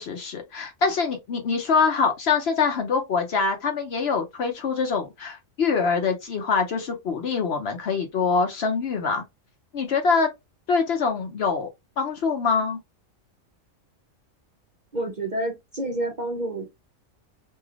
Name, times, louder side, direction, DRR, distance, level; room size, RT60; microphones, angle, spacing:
voice 1, 0.0-9.2 9.7-10.3 10.7-11.7 12.0-12.8, left 5 dB, 60° left, 0.8 m, -24 dB
voice 2, 14.9-16.8, right 1 dB, 45° right, 0.6 m, -29 dB
3.3 x 2.7 x 2.3 m
omnidirectional pair, 1.4 m